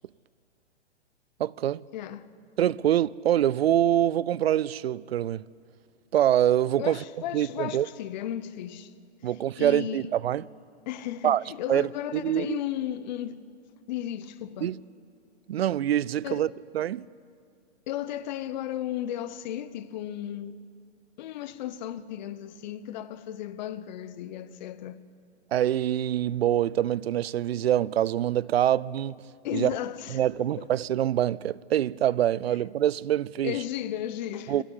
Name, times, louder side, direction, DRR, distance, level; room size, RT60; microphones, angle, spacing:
voice 1, 1.4-1.8 2.6-5.4 6.1-7.0 7.3-7.9 9.2-10.5 11.2-11.4 11.7-12.6 14.6-14.8 15.5-17.1 25.5-29.7 30.1-33.5 34.5-34.6, right 11 dB, 65° right, 0.6 m, -25 dB
voice 2, 1.9-2.3 6.8-8.9 9.6-10.1 10.9-13.4 13.9-14.7 16.2-16.5 17.9-20.6 21.2-25.0 29.4-30.2 30.6-30.7 33.4-34.6, left 11 dB, 40° left, 1.1 m, -34 dB
26.5 x 13.0 x 9.8 m
hypercardioid pair, 135°, 33 cm